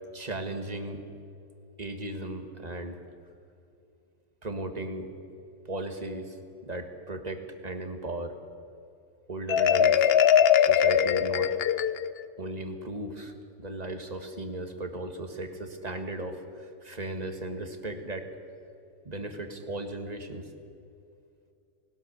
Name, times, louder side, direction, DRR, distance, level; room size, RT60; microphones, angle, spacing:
voice 1, 0.1-1.1 1.8-3.0 4.4-5.1 5.7-6.4 6.6-8.4 9.3-10.1 10.6-11.5 12.4-18.3 19.0-20.5, right 1 dB, 30° right, 6 dB, 1.8 m, -36 dB
Marimba xylophone, 9.5-12.3, left 9 dB, 55° left, 0.8 m, -21 dB
20.0 x 19.0 x 6.9 m, 2.6 s
omnidirectional pair, 1.3 m